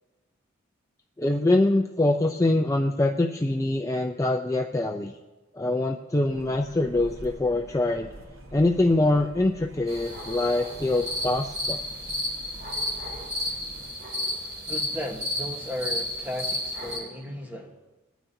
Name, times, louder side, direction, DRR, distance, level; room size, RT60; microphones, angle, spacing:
voice 1, 1.2-5.1 5.5-8.1 8.5-11.8, left 2 dB, 15° left, 0.4 m, -24 dB
sound 1, 6.3-13.9, right 1 dB, 80° right, 1.4 m, -46 dB
sound 2, 9.9-17.0, left 1 dB, 50° right, 4.4 m, -32 dB
voice 2, 14.7-17.8, equal, 10° right, 1.2 m, -35 dB
22.0 x 9.2 x 2.7 m
head